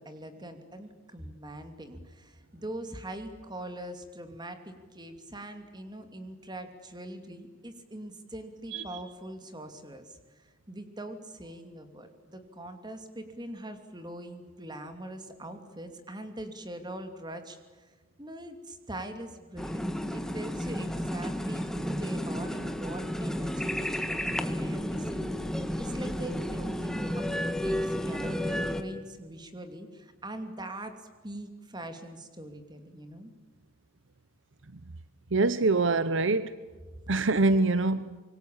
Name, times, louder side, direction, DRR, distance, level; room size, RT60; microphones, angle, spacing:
voice 1, 0.0-17.9 18.2-25.3 25.8-33.3, right 1 dB, 20° right, 2.7 m, -42 dB
sound 1, 19.6-28.8, equal, 5° left, 1.5 m, -32 dB
voice 2, 35.3-36.5 37.1-38.2, right 3 dB, 65° right, 0.9 m, -24 dB
25.5 x 23.0 x 8.7 m
head